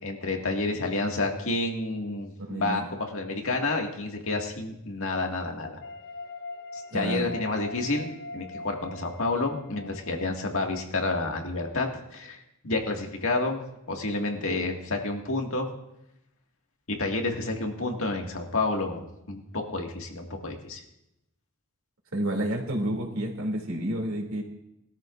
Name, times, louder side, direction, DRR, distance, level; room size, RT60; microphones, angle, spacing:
voice 1, 0.0-5.8 6.7-15.7 16.9-20.8, left 2 dB, 65° left, 2 dB, 2.0 m, -30 dB
voice 2, 2.4-2.9 6.9-7.3 22.1-24.4, right 1 dB, 70° right, 0 dB, 2.8 m, -30 dB
sound 1, 5.8-11.0, left 2 dB, 45° left, 0.5 m, -42 dB
21.0 x 13.5 x 2.6 m, 0.84 s
head